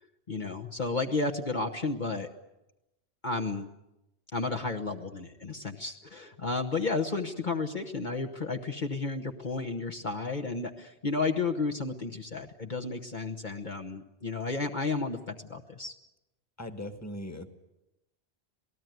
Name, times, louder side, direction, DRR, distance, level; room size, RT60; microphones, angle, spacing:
voice 1, 0.3-2.3 3.2-3.7 4.3-15.9, left 3 dB, 45° left, 3 dB, 1.3 m, -32 dB
voice 2, 16.6-17.5, left 1 dB, 15° left, 8 dB, 1.6 m, -39 dB
27.5 x 18.5 x 9.3 m, 0.95 s
omnidirectional pair, 1.1 m